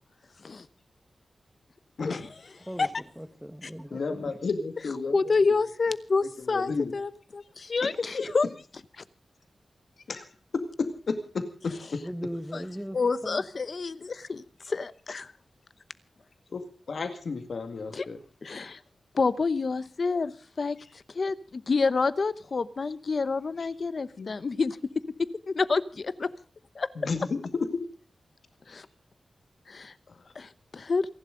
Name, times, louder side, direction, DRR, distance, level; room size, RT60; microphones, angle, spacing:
voice 1, 2.6-4.4 12.0-13.5, equal, 5° right, 1.5 m, -39 dB
voice 2, 3.9-5.7 6.4-6.9 7.8-8.2 10.1-10.2 10.5-12.0 16.5-18.2 24.1-24.3 27.0-27.7 30.1-30.2, left 4 dB, 65° left, 2.1 m, -32 dB
voice 3, 5.1-8.5 12.9-15.3 17.9-18.0 18.4-18.8 19.1-20.3 20.6-20.8 21.1-24.8 25.5-26.3 26.8-26.9 28.7-28.8 29.7-29.9 30.4-31.1, left 4 dB, 50° left, 0.9 m, -28 dB
28.5 x 11.5 x 3.8 m
wide cardioid pair, 140°, 0 cm